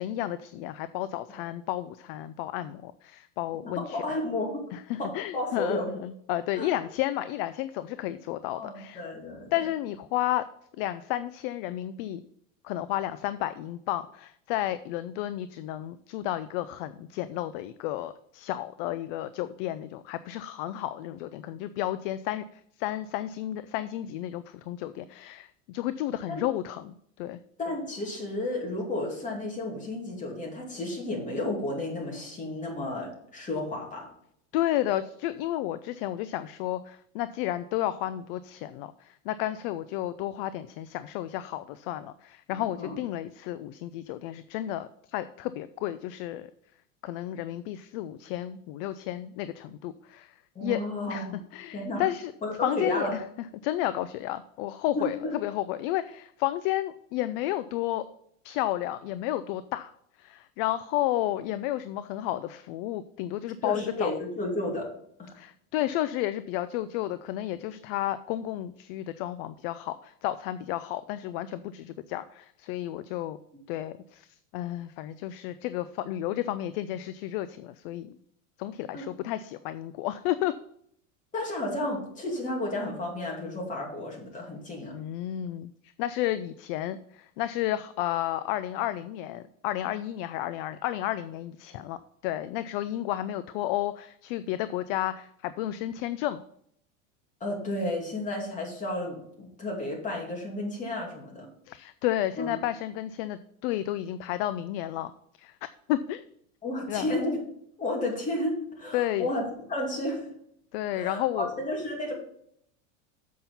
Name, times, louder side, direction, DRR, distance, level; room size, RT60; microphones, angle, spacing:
voice 1, 0.0-4.1 4.7-9.1 9.5-10.5 10.8-12.2 12.6-27.4 34.5-46.5 47.0-50.8 51.1-52.3 52.6-53.2 53.6-58.1 58.4-59.9 60.2-64.1 65.3-73.4 73.7-78.2 78.6-80.5 84.9-85.7 86.0-96.4 101.7-105.1 105.4-106.2 106.9-107.2 108.9-109.3 110.7-111.5, left 13 dB, 45° left, 14 dB, 0.4 m, -32 dB
voice 2, 3.7-4.7 5.0-5.9 6.6-6.7 8.5-9.6 26.3-26.4 27.6-34.1 42.5-43.0 50.5-51.4 51.7-52.1 52.4-53.1 54.9-55.3 63.6-64.9 65.2-65.4 78.9-79.1 81.3-84.9 97.4-101.5 102.4-102.5 106.6-107.4 107.8-110.3 110.9-112.1, left 1 dB, 20° left, -1 dB, 2.7 m, -32 dB
7.4 x 5.8 x 5.5 m, 0.69 s
supercardioid pair, 140°, 41 cm